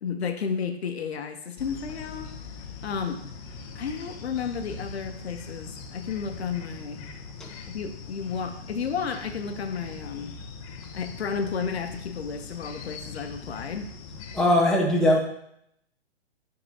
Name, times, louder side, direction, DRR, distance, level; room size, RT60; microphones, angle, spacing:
voice 1, 0.0-2.3 2.8-3.2 3.7-7.0 7.7-10.3 10.9-13.9, left 6 dB, 70° left, 7 dB, 0.9 m, -32 dB
sound 1, 1.6-14.4, left 4 dB, 35° left, 0.8 m, -41 dB
voice 2, 14.3-15.2, left 1 dB, ahead, -2 dB, 0.9 m, -20 dB
10.0 x 3.9 x 2.8 m, 0.72 s
hypercardioid pair, 125°, 33 cm